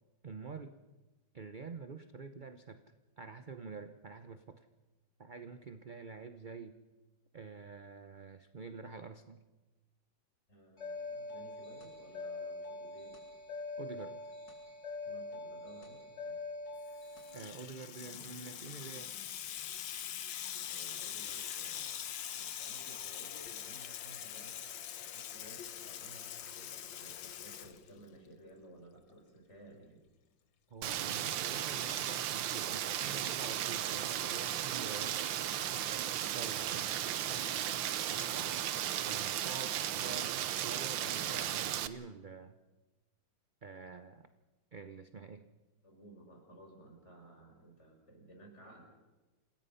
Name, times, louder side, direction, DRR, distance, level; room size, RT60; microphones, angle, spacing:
voice 1, 0.2-0.7 1.3-2.8 3.2-4.7 5.2-6.8 7.3-9.4 13.8-14.3 17.3-19.1 30.7-35.2 36.3-37.0 38.1-38.7 39.0-40.3 40.6-42.5 43.6-44.3 44.7-45.4, right 4 dB, 45° right, 9 dB, 0.6 m, -47 dB
voice 2, 10.5-13.2 15.0-16.4 20.4-30.0 45.8-48.8, right 1 dB, 35° left, 1 dB, 6.6 m, -56 dB
sound 1, 10.8-17.4, left 3 dB, 70° left, 4.5 m, -44 dB
Water tap faucet / Sink (filling or washing), 16.9-28.3, left 10 dB, 85° left, 1.7 m, -43 dB
Rain, 30.8-41.9, right 11 dB, 90° right, 1.6 m, -35 dB
28.0 x 19.5 x 5.7 m, 1.1 s
omnidirectional pair, 2.0 m